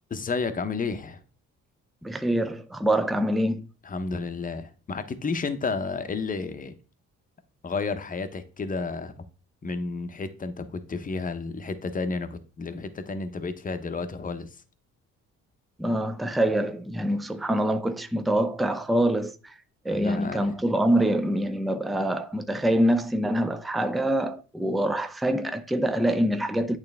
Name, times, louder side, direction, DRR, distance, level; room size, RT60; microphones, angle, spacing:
voice 1, 0.1-1.2 3.8-6.7 7.6-9.3 9.6-14.5 19.9-20.5, left 4 dB, 25° left, 0.8 m, -31 dB
voice 2, 2.0-3.7 15.8-19.5 19.8-26.8, right 1 dB, ahead, 0.4 m, -25 dB
8.6 x 3.3 x 3.3 m
cardioid pair, 90°, 30 cm